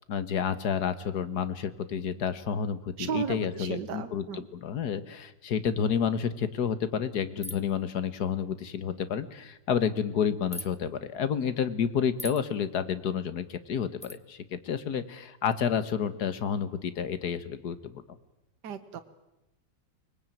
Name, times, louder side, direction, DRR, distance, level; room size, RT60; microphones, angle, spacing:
voice 1, 0.1-18.2, left 7 dB, 60° left, 13 dB, 1.8 m, -30 dB
voice 2, 3.0-4.5 18.6-19.0, right 7 dB, 70° right, 8 dB, 1.7 m, -34 dB
sound 1, 7.4-7.8 10.5-10.7 12.2-12.4 14.0-14.2, left 1 dB, 10° left, 0.4 m, -39 dB
24.5 x 20.5 x 9.2 m, 0.96 s
omnidirectional pair, 1.9 m